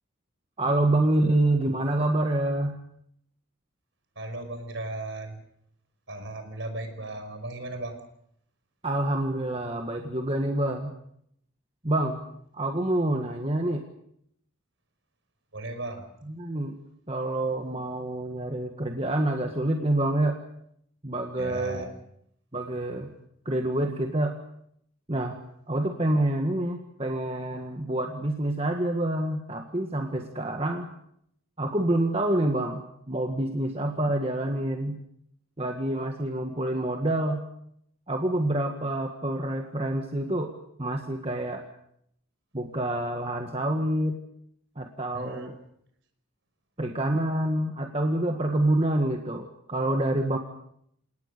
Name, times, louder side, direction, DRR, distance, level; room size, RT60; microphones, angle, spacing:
voice 1, 0.6-2.8 8.8-11.0 11.8-12.2 12.5-13.8 16.2-16.8 17.1-20.4 21.0-21.8 22.5-23.1 23.4-24.4 25.1-25.4 25.7-30.9 31.6-35.0 35.6-37.4 38.1-40.5 40.8-41.6 42.5-44.2 44.7-45.5 46.8-50.4, right 1 dB, 25° right, 3 dB, 1.6 m, -27 dB
voice 2, 4.2-5.4 6.1-7.9 15.5-16.0 21.4-21.9 45.1-45.5, right 2 dB, 55° right, 7 dB, 5.3 m, -36 dB
29.0 x 19.0 x 6.7 m, 0.73 s
head